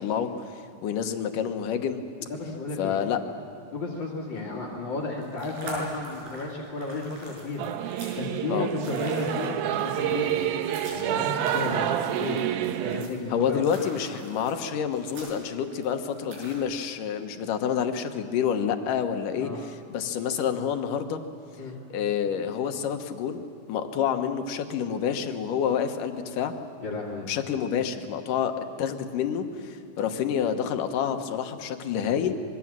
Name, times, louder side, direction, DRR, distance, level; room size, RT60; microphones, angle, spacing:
voice 1, 0.0-2.0 2.8-3.2 4.3-4.5 8.5-8.7 13.3-21.2 21.9-26.5 27.3-28.5 28.8-32.3, left 8 dB, 70° left, 6 dB, 2.6 m, -28 dB
voice 2, 2.3-3.0 3.7-10.4 10.8-12.4 12.9-13.6 19.4-19.6 21.6-21.8 26.8-27.3, left 3 dB, 35° left, -5 dB, 2.7 m, -33 dB
sound 1, 5.0-16.6, right 1 dB, 70° right, 7.7 m, -43 dB
Singing / Musical instrument, 7.6-13.1, right 11 dB, 90° right, 2.7 m, -28 dB
26.0 x 22.5 x 7.5 m, 2.6 s
omnidirectional pair, 4.2 m